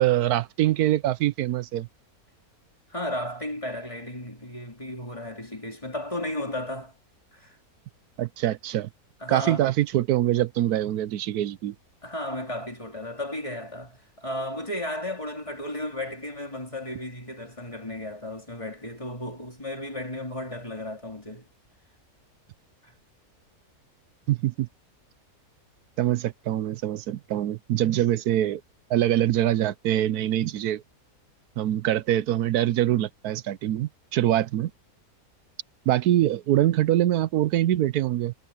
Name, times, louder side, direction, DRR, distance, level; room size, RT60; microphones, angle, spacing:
voice 1, 0.0-1.9 8.2-8.9 9.3-11.7 24.3-24.7 26.0-28.6 28.9-30.8 31.6-34.7 35.9-38.3, right 13 dB, 80° right, 1.2 m, -24 dB
voice 2, 2.9-6.9 7.3-7.6 9.2-9.7 12.0-21.5 22.8-22.9, left 1 dB, 20° left, 3.4 m, -34 dB
omnidirectional pair, 1.6 m